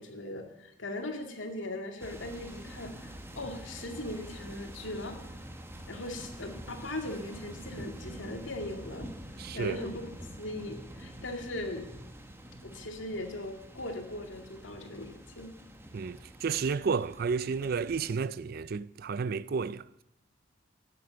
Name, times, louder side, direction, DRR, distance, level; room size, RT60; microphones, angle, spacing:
voice 1, 0.0-5.2 5.9-9.1 9.5-10.1 10.4-11.9 12.6-15.5, left 1 dB, 85° left, 2.2 m, -39 dB
sound 1, 2.0-18.1, right 1 dB, 15° right, 1.3 m, -46 dB
voice 2, 9.4-9.8 15.9-19.9, right 5 dB, 55° right, 0.4 m, -32 dB
17.0 x 7.7 x 7.0 m
head